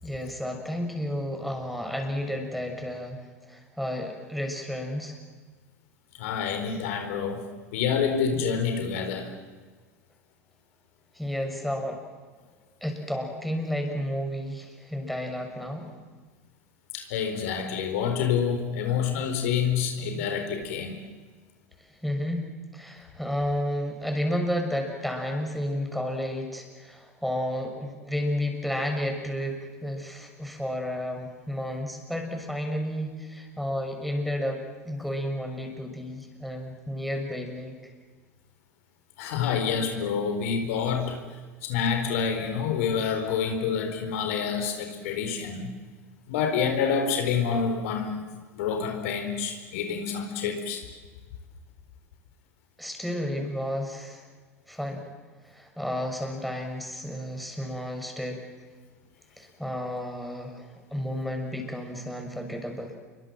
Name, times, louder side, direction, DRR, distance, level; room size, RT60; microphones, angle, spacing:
voice 1, 0.0-5.2 11.1-12.0 12.8-15.9 21.8-37.7 52.8-54.2 54.7-55.1 55.4-58.4 59.4-63.0, equal, ahead, 2 dB, 6.6 m, -32 dB
voice 2, 6.2-9.3 16.9-21.0 39.2-41.2 41.6-45.7 46.3-48.3 48.5-50.8, left 6 dB, 65° left, 5 dB, 4.3 m, -27 dB
28.5 x 24.0 x 7.6 m, 1.4 s
hypercardioid pair, 85°, 8 cm